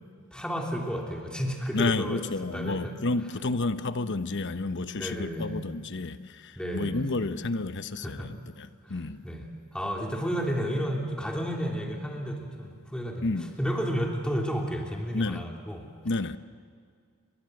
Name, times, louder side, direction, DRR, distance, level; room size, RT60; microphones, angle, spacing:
voice 1, 0.3-2.2 2.5-3.0 4.9-5.6 6.6-7.3 8.0-8.3 8.8-9.4 9.7-13.3 13.6-15.9, equal, 5° left, 0 dB, 3.1 m, -32 dB
voice 2, 1.7-9.2 13.2-13.5 15.1-15.4 16.0-16.4, left 3 dB, 55° left, 11 dB, 0.9 m, -31 dB
29.0 x 23.0 x 7.9 m, 2.1 s
head